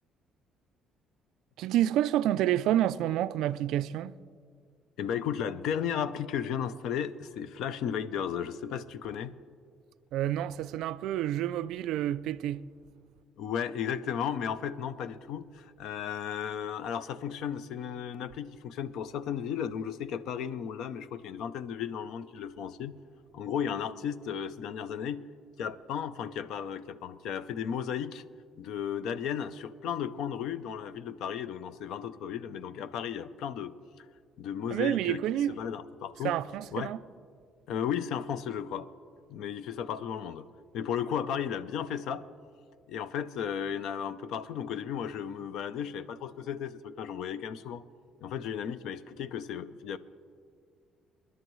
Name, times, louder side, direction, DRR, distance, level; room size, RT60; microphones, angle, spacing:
voice 1, 1.6-4.2 10.1-12.7 34.7-35.6 36.2-37.0, right 12 dB, 80° right, 0.3 m, -29 dB
voice 2, 5.0-9.3 13.4-22.9 23.3-25.2 25.6-28.2 28.6-34.1 34.4-36.4 36.7-36.9 37.7-38.9 39.3-40.5 40.7-42.3 42.9-47.8 48.2-50.0, left 8 dB, 70° left, 0.5 m, -34 dB
28.5 x 11.0 x 3.1 m
cardioid pair, 150°, 0 cm